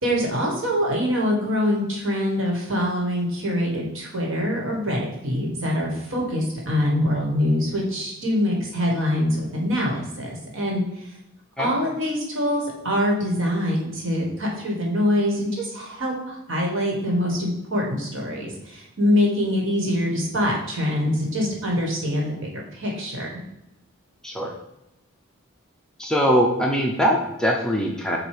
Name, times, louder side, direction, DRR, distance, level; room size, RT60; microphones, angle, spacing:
voice 1, 0.0-10.8 11.6-23.4, left 1 dB, 60° right, -1 dB, 1.5 m, -24 dB
voice 2, 24.2-24.5 26.0-28.2, equal, 5° left, -1 dB, 0.5 m, -22 dB
7.6 x 2.6 x 4.9 m, 0.88 s
head